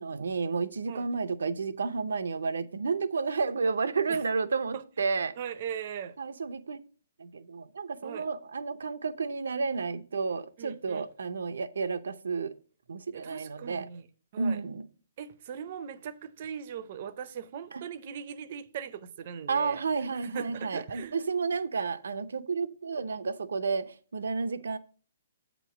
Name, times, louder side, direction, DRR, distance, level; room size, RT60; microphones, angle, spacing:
voice 1, 0.0-5.3 6.2-6.8 7.2-12.5 12.9-13.9 14.4-14.9 17.7-17.8 19.5-24.8, right 4 dB, 85° right, 0.5 m, -31 dB
voice 2, 5.4-6.2 8.0-8.3 10.6-11.1 13.1-14.1 14.3-14.6 15.2-21.2, right 8 dB, 40° right, 0.5 m, -40 dB
7.8 x 3.0 x 5.8 m
hypercardioid pair, 165°, 0 cm